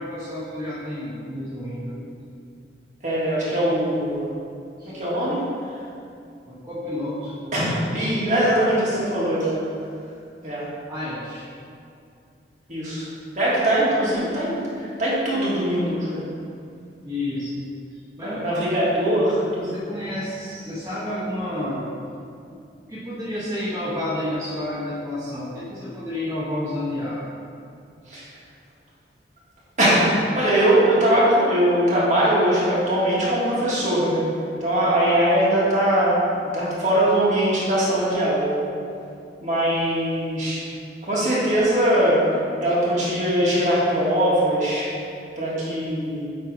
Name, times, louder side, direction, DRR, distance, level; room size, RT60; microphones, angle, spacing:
voice 1, 0.0-2.1 4.8-4.9 6.5-7.5 10.9-11.5 17.0-17.5 18.2-18.4 19.6-21.9 22.5-22.6 22.9-27.2, left 1 dB, 15° right, -10 dB, 1.0 m, -30 dB
voice 2, 3.0-4.3 4.9-5.4 7.5-9.6 10.4-10.6 12.7-13.1 13.4-16.2 18.2-19.8 28.1-28.3 29.8-34.2 34.6-38.6 39.4-40.6 41.0-42.2 42.6-44.9 45.4-46.3, right 1 dB, 45° right, -8 dB, 1.6 m, -21 dB
8.8 x 3.4 x 4.7 m, 2.5 s
head